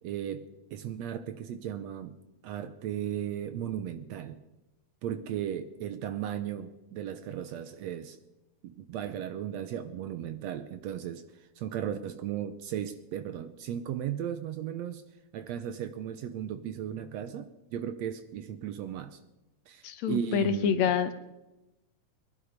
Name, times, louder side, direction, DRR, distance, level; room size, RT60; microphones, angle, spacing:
voice 1, 0.0-2.2 2.4-4.4 5.0-8.2 8.6-15.0 15.3-19.2 19.7-20.9, right 10 dB, 75° right, 1.8 m, -36 dB
voice 2, 19.8-21.1, left 7 dB, 70° left, 2.0 m, -27 dB
21.0 x 11.5 x 5.2 m
omnidirectional pair, 3.6 m